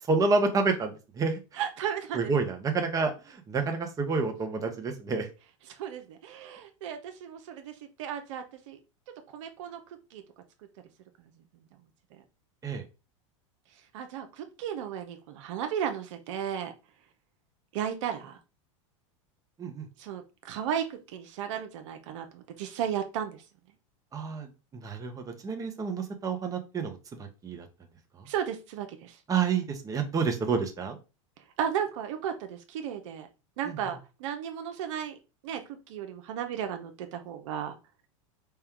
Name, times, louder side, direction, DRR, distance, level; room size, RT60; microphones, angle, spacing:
voice 1, 0.1-1.4 2.1-5.3 12.6-12.8 19.6-19.9 24.1-24.5 24.8-27.7 29.3-31.0 33.7-33.8, right 4 dB, 20° right, 4 dB, 0.9 m, -29 dB
voice 2, 1.5-2.5 5.7-8.8 9.3-9.8 10.1-10.2 12.1-12.2 13.9-16.7 17.7-18.4 20.0-23.4 28.3-29.2 31.6-33.3 33.6-35.2 35.4-37.8, right 9 dB, 70° right, 6 dB, 0.7 m, -34 dB
4.4 x 2.3 x 3.6 m, 0.30 s
supercardioid pair, 115°, 17 cm